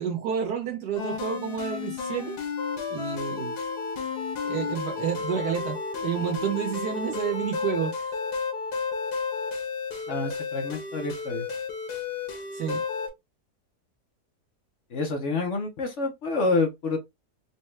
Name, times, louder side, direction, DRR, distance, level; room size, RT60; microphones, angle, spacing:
voice 1, 0.0-2.3 2.9-3.5 4.4-8.2 12.5-12.8, right 8 dB, 85° right, 1.7 m, -30 dB
sound 1, 1.0-13.1, left 5 dB, 80° left, 1.8 m, -32 dB
voice 2, 10.1-11.4 14.9-17.0, left 3 dB, 55° left, 1.0 m, -28 dB
4.1 x 2.3 x 3.1 m
omnidirectional pair, 1.7 m